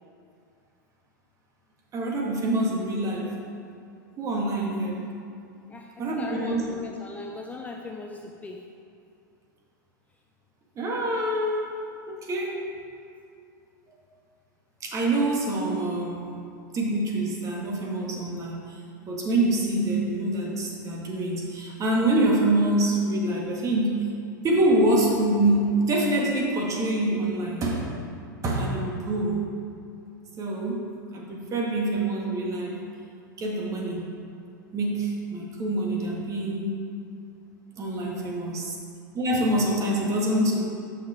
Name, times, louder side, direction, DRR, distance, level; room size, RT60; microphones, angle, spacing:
voice 1, 1.9-3.4 4.2-5.1 6.0-6.6 10.8-11.7 12.1-12.6 14.8-16.5 16.7-18.8 19.1-24.1 24.4-27.9 28.4-29.4 30.4-30.9 31.1-32.8 33.4-34.1 34.7-36.8 37.8-38.8 39.1-40.6, right 1 dB, 30° right, -1 dB, 1.7 m, -25 dB
voice 2, 5.7-8.6, left 3 dB, 15° left, 1 dB, 0.5 m, -39 dB
6.7 x 6.1 x 4.9 m, 2.5 s
hypercardioid pair, 110°, 11 cm